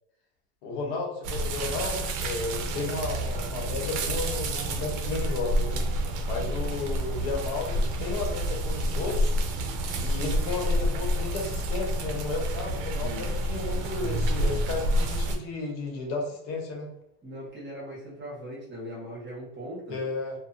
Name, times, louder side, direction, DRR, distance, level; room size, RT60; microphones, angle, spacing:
voice 1, 0.6-5.8 6.2-9.4 9.9-16.9 19.9-20.3, left 3 dB, 80° left, 0 dB, 1.0 m, -33 dB
sound 1, 1.2-15.4, right 1 dB, 60° right, 0.6 m, -28 dB
voice 2, 17.2-20.0, equal, 30° right, -6 dB, 1.2 m, -39 dB
2.9 x 2.2 x 2.6 m, 0.78 s
supercardioid pair, 115°, 35 cm